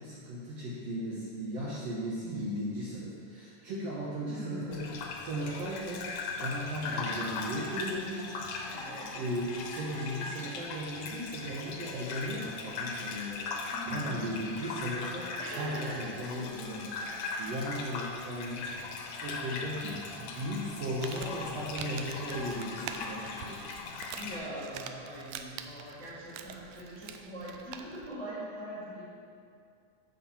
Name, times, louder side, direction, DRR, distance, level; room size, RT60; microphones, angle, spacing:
voice 1, 0.0-8.3 9.1-18.9 19.2-23.6, equal, 65° right, -5 dB, 1.8 m, -37 dB
voice 2, 4.2-5.2 8.7-9.2 13.7-14.7 15.4-16.0 24.1-29.0, right 1 dB, 5° left, -8 dB, 1.4 m, -42 dB
Gurgling / Bathtub (filling or washing), 4.7-24.4, left 4 dB, 75° left, 2.4 m, -39 dB
Crumpling crinkling, 20.8-28.1, right 7 dB, 80° right, 1.9 m, -46 dB
11.5 x 6.5 x 4.3 m, 2.4 s
omnidirectional pair, 3.8 m